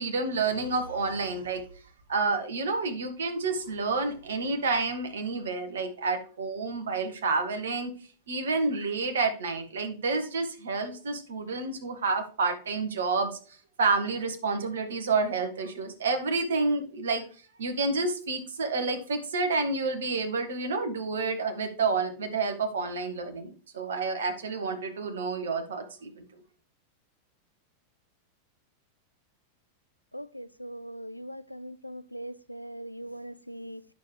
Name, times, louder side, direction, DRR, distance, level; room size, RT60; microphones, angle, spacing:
voice 1, 0.0-1.6 2.1-7.9 8.3-13.4 13.8-17.2 17.6-26.2, right 3 dB, 65° right, 1.6 m, -29 dB
voice 2, 30.1-33.8, equal, 90° left, 0.3 m, -41 dB
9.1 x 6.8 x 3.2 m
figure-of-eight pair, 90°, 0 cm